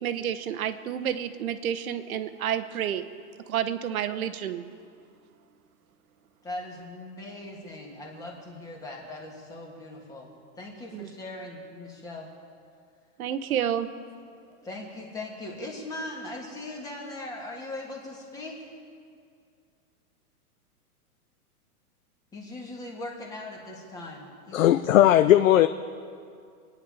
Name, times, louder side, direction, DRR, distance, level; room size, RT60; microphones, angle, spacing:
voice 1, 0.0-3.1 3.5-4.7 10.9-11.1 13.2-13.9, right 9 dB, 65° right, 11 dB, 1.1 m, -30 dB
voice 2, 6.4-10.3 10.6-12.3 14.6-18.7 22.3-24.7, left 2 dB, 10° left, -1 dB, 1.5 m, -39 dB
voice 3, 24.5-25.7, left 12 dB, 60° left, 10 dB, 0.6 m, -18 dB
27.5 x 10.0 x 4.9 m, 2.3 s
supercardioid pair, 175°, 46 cm